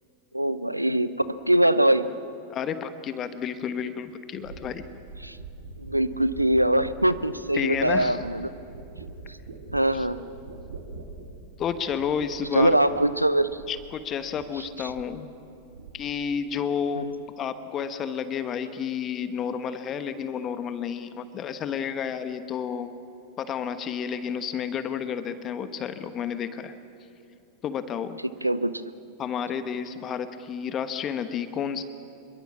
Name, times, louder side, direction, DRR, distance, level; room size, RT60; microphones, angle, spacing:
voice 1, 0.3-2.1 5.2-5.4 5.8-8.5 9.7-10.2 12.5-13.5 17.0-17.1 28.4-28.8, right 1 dB, 85° right, 14 dB, 0.8 m, -22 dB
voice 2, 2.5-4.8 7.5-8.2 9.9-10.1 11.6-12.8 13.7-15.3 15.9-17.1 17.4-22.9 23.4-26.7 27.6-28.2 29.2-31.8, left 7 dB, 30° left, 11 dB, 1.3 m, -31 dB
sound 1, 3.6-3.7 4.3-14.0 14.3-15.2 15.5-16.3 16.6-17.1, right 4 dB, 65° right, 2.9 m, -44 dB
26.5 x 22.5 x 7.2 m, 2.7 s
figure-of-eight pair, 90°, 0 cm